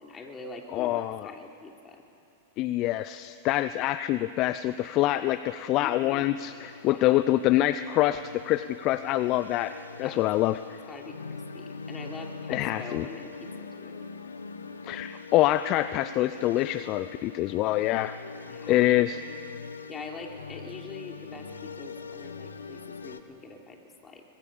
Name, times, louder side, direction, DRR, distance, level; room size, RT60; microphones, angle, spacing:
voice 1, 0.0-2.0 5.8-6.3 6.8-7.2 10.0-10.5 10.9-14.0 18.5-18.8 19.9-24.2, left 3 dB, 20° left, 2 dB, 3.4 m, -44 dB
voice 2, 0.7-1.3 2.6-9.7 10.0-10.8 12.5-13.1 14.8-18.2 18.7-19.2, left 15 dB, 45° left, 13 dB, 0.6 m, -25 dB
sound 1, 4.8-23.2, left 4 dB, 90° left, 1.2 m, -43 dB
24.0 x 21.0 x 7.2 m, 2.5 s
hypercardioid pair, 105°, 0 cm